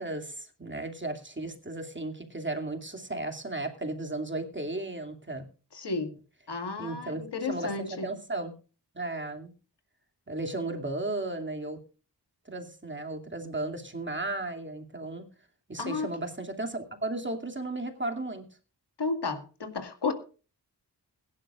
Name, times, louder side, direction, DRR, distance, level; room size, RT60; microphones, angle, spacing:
voice 1, 0.0-5.4 6.8-8.5 8.9-9.5 10.3-11.8 12.4-15.3 15.7-18.5, right 2 dB, 30° right, 3 dB, 2.7 m, -35 dB
voice 2, 5.7-6.2 6.5-8.1 15.8-16.1 19.0-20.1, left 4 dB, 90° left, 7 dB, 2.1 m, -32 dB
21.5 x 11.0 x 2.5 m, 0.36 s
cardioid pair, 55°, 40 cm